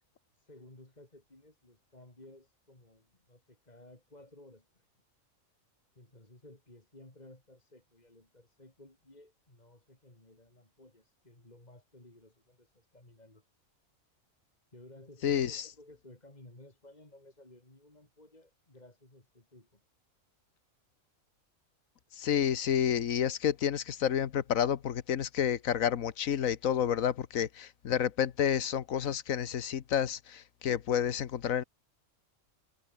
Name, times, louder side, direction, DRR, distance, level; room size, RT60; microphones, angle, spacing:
voice 1, 0.4-4.7 6.0-13.4 14.7-19.8, left 1 dB, 30° left, 4.1 m, -56 dB
voice 2, 15.2-15.6 22.1-31.6, left 9 dB, 80° left, 1.4 m, -30 dB
omnidirectional pair, 1.4 m